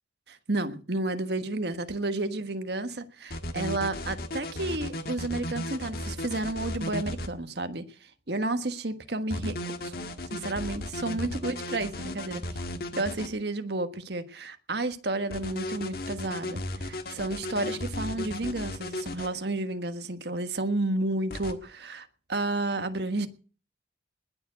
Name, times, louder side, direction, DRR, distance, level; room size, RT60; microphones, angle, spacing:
voice 1, 0.3-12.6 12.9-23.3, right 2 dB, 60° right, 1.4 m, -31 dB
sound 1, 3.3-7.3 9.3-13.3 15.3-19.3 21.3-21.5, left 1 dB, 55° left, 1.6 m, -35 dB
20.0 x 7.0 x 8.1 m
head